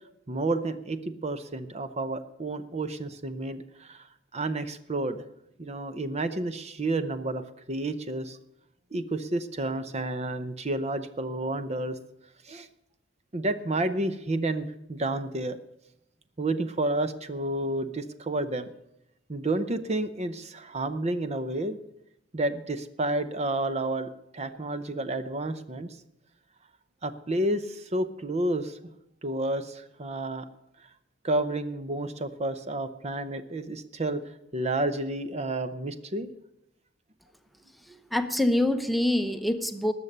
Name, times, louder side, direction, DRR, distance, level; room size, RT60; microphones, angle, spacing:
voice 1, 0.3-4.1 4.3-5.2 5.6-7.4 7.7-8.4 8.9-11.9 12.5-12.7 13.3-15.6 16.4-18.7 19.3-21.8 22.3-25.9 27.0-28.8 29.2-30.5 31.2-34.2 34.5-36.3, right 2 dB, 35° right, 11 dB, 0.7 m, -30 dB
voice 2, 37.9-39.9, left 1 dB, ahead, 8 dB, 0.8 m, -25 dB
19.5 x 6.8 x 6.7 m, 0.86 s
head